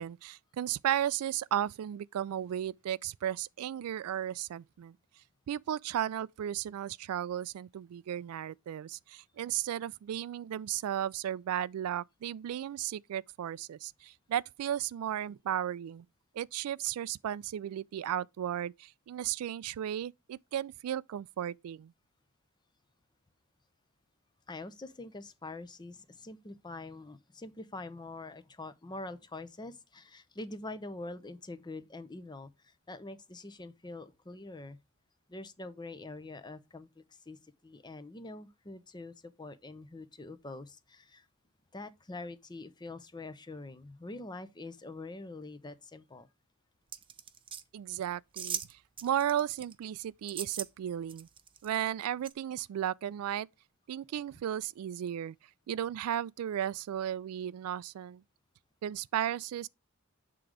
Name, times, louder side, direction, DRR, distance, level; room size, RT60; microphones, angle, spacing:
voice 1, 0.0-5.0 5.5-16.1 16.3-21.9 47.7-51.3 51.6-53.5 53.9-55.4 55.7-58.2 58.8-59.7, right 10 dB, 90° right, 0.3 m, -35 dB
voice 2, 24.5-34.8 35.3-41.3 41.7-46.3, left 2 dB, 20° left, 0.6 m, -45 dB
sound 1, 46.9-47.6 48.4-48.7 49.0-49.7 50.3-50.7 51.1-51.8 52.2-52.3, right 8 dB, 25° right, 0.5 m, -39 dB
7.8 x 3.8 x 4.7 m
head